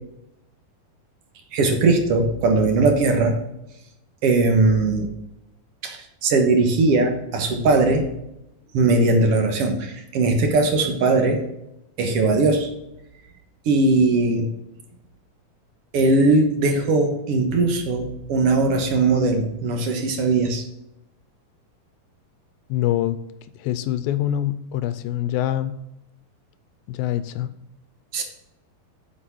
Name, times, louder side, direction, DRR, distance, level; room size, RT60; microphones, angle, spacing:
voice 1, 1.5-3.3 4.2-5.1 5.8-8.0 8.7-11.4 12.0-12.7 13.6-14.5 15.9-20.6 28.1-28.2, right 3 dB, 65° right, 4 dB, 1.5 m, -19 dB
voice 2, 22.7-23.2 23.6-25.8 26.9-27.5, left 12 dB, 80° left, 13 dB, 2.2 m, -24 dB
8.0 x 6.1 x 6.0 m, 0.86 s
omnidirectional pair, 4.3 m